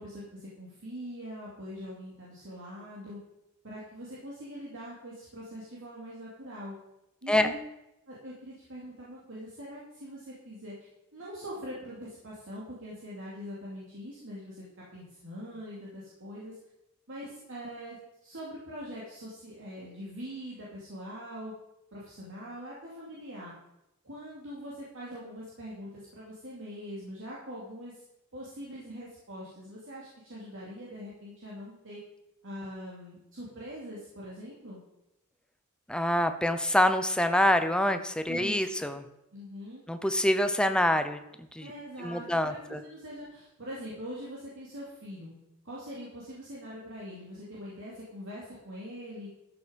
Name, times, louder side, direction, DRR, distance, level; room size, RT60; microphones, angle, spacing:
voice 1, 0.0-3.2 3.6-6.8 7.2-7.6 8.1-14.6 14.9-16.6 17.1-18.0 18.2-21.5 21.9-23.5 24.0-28.0 28.3-32.0 32.4-34.8 38.3-38.6 39.3-39.8 41.6-45.3 45.6-49.3, equal, 60° right, -6 dB, 2.7 m, -43 dB
voice 2, 35.9-39.0 39.9-41.2 41.5-41.7 42.0-42.8, left 1 dB, 5° left, 9 dB, 0.7 m, -26 dB
13.0 x 6.9 x 5.2 m, 0.87 s
head